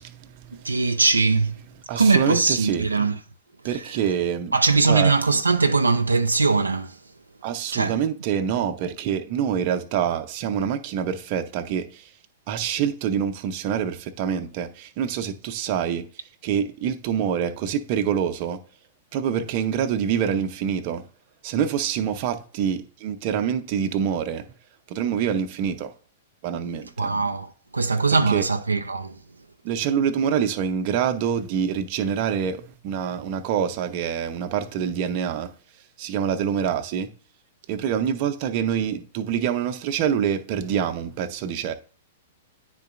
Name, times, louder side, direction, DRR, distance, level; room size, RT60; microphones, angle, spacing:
voice 1, 0.0-1.0 1.9-2.9 3.6-4.5 4.9-5.1 7.4-12.1 12.5-16.0 16.4-18.6 19.1-21.0 21.4-24.5 24.9-25.9 26.4-27.1 28.3-28.4 29.6-35.5 36.0-37.1 37.7-41.7, right 8 dB, 45° right, 0.6 m, -26 dB
voice 2, 0.5-1.6 2.0-3.2 3.6-4.0 4.5-7.0 7.7-8.0 27.0-29.2, right 4 dB, 85° right, 0.4 m, -21 dB
9.9 x 3.8 x 2.5 m
figure-of-eight pair, 105°, 0 cm